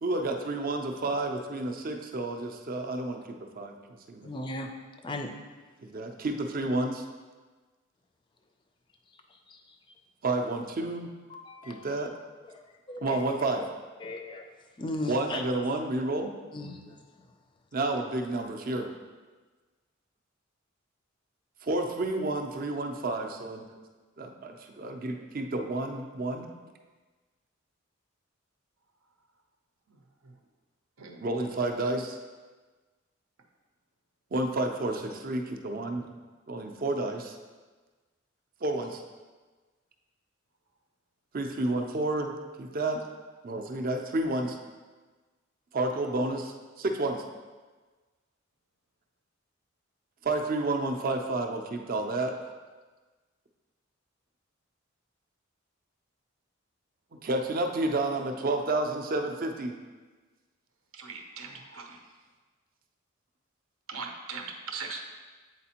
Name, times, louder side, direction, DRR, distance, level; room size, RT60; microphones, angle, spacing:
voice 1, 0.0-4.3 5.9-7.0 10.2-11.1 11.7-12.1 13.0-13.6 15.1-16.3 17.7-18.9 21.6-23.6 24.2-26.5 31.2-32.2 34.3-36.1 36.5-37.4 38.6-39.0 41.3-42.3 42.6-43.0 43.4-44.6 45.7-47.2 50.2-52.4 57.2-59.7, right 2 dB, 45° right, 4 dB, 0.5 m, -30 dB
voice 2, 4.2-4.7 5.0-5.3 9.5-9.6 11.3-12.1 12.5-12.6 12.9-13.2 14.0-14.5 14.8-15.4 16.5-17.0, left 2 dB, 25° left, 4 dB, 0.4 m, -37 dB
voice 3, 60.9-62.0 63.9-65.0, right 4 dB, 85° right, 3 dB, 0.7 m, -40 dB
8.0 x 4.2 x 2.9 m, 1.3 s
head